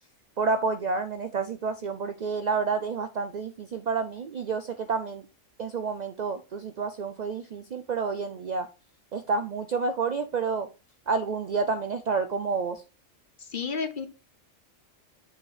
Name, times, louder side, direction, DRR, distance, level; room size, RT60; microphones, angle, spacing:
voice 1, 0.4-5.2 5.6-8.7 9.1-10.7 11.1-12.8, right 4 dB, 80° right, 8 dB, 0.3 m, -29 dB
voice 2, 13.4-14.1, left 5 dB, 45° left, 9 dB, 0.9 m, -31 dB
7.8 x 5.8 x 3.3 m, 0.31 s
omnidirectional pair, 1.4 m